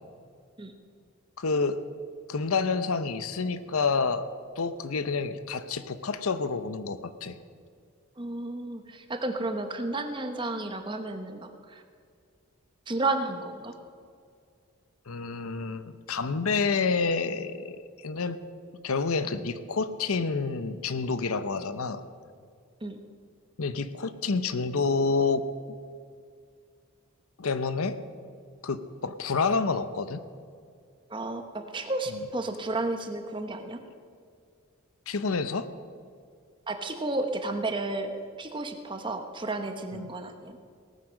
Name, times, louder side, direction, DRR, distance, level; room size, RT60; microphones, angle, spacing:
voice 1, 1.4-1.8 2.3-4.3 4.6-7.4 15.1-18.4 18.8-22.0 23.6-25.4 27.4-28.0 28.6-30.2 35.1-35.7 39.9-40.1, left 4 dB, 80° left, 12 dB, 0.7 m, -28 dB
voice 2, 8.2-11.8 12.9-13.8 22.8-23.0 31.1-33.8 36.7-38.1 38.4-40.6, right 2 dB, 20° right, 6 dB, 1.0 m, -32 dB
18.5 x 9.3 x 6.3 m, 2.2 s
head